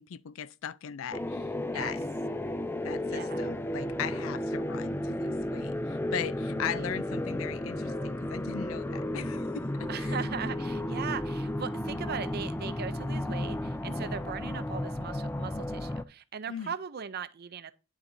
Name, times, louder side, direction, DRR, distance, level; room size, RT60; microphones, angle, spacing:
voice 1, 0.0-1.5 1.7-2.0 2.8-5.7 6.1-10.1 16.5-16.7, left 8 dB, 80° left, 0.4 m, -38 dB
sound 1, 1.1-16.0, left 1 dB, 10° left, 0.4 m, -33 dB
voice 2, 3.1-3.5 6.6-6.9 9.9-17.7, right 6 dB, 50° right, 0.5 m, -39 dB
9.8 x 7.1 x 2.6 m
head